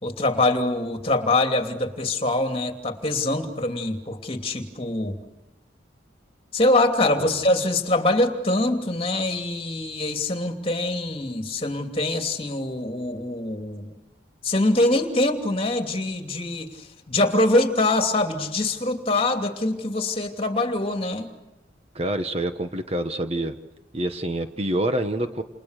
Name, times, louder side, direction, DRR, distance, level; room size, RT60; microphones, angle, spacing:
voice 1, 0.0-5.2 6.5-14.0 14.4-21.3, left 2 dB, 30° left, 4 dB, 2.9 m, -24 dB
voice 2, 21.9-23.6 23.9-25.4, right 1 dB, 30° right, 7 dB, 1.4 m, -26 dB
29.5 x 29.5 x 6.7 m, 1.0 s
head